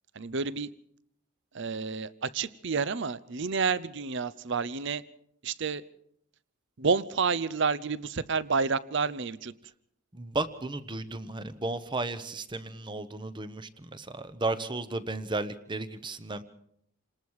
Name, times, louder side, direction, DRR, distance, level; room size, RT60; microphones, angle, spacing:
voice 1, 0.1-0.7 1.5-5.0 5.4-5.8 6.8-9.5, right 5 dB, 55° right, 17 dB, 0.7 m, -29 dB
voice 2, 10.1-16.4, right 2 dB, 20° right, 12 dB, 1.0 m, -34 dB
28.5 x 19.5 x 4.8 m, 0.73 s
head